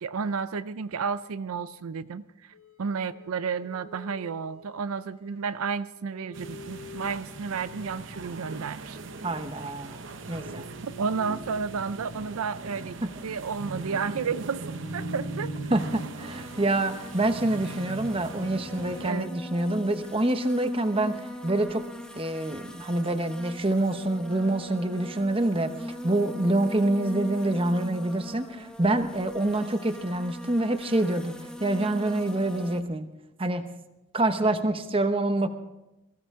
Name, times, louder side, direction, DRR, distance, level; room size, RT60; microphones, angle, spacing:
voice 1, 0.0-9.0 10.8-15.5 19.0-19.3, right 5 dB, 80° right, 13 dB, 0.5 m, -32 dB
sound 1, 2.5-20.4, left 1 dB, 85° left, 1.7 m, -49 dB
sound 2, 6.3-19.1, right 3 dB, 55° right, 0.8 m, -40 dB
voice 2, 9.2-10.0 10.3-10.6 13.0-13.1 15.7-21.9 22.1-25.7 26.0-33.1 33.4-33.7 34.1-35.5, right 1 dB, 25° right, 8 dB, 0.9 m, -26 dB
sound 3, 16.2-32.8, equal, 5° left, 1.0 m, -41 dB
22.0 x 15.5 x 3.7 m, 0.96 s
head